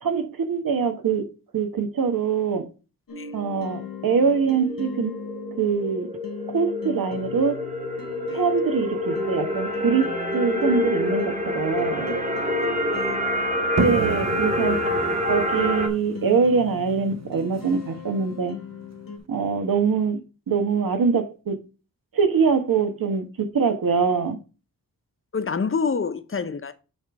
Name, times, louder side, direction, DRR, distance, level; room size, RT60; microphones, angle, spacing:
voice 1, 0.0-1.3 1.5-2.7 3.3-5.1 5.6-6.1 6.5-7.6 8.3-12.1 13.8-14.8 15.3-18.6 19.3-20.2 20.5-21.6 22.1-24.4, right 5 dB, 85° right, 1.2 m, -23 dB
sound 1, 3.1-19.2, left 5 dB, 90° left, 1.4 m, -39 dB
sound 2, 3.8-15.9, left 1 dB, 20° right, 1.3 m, -27 dB
voice 2, 12.6-13.2 25.3-26.7, left 5 dB, 40° left, 0.7 m, -28 dB
sound 3, 13.8-19.2, right 4 dB, 50° right, 0.8 m, -33 dB
7.9 x 3.3 x 5.1 m
wide cardioid pair, 150°, 33 cm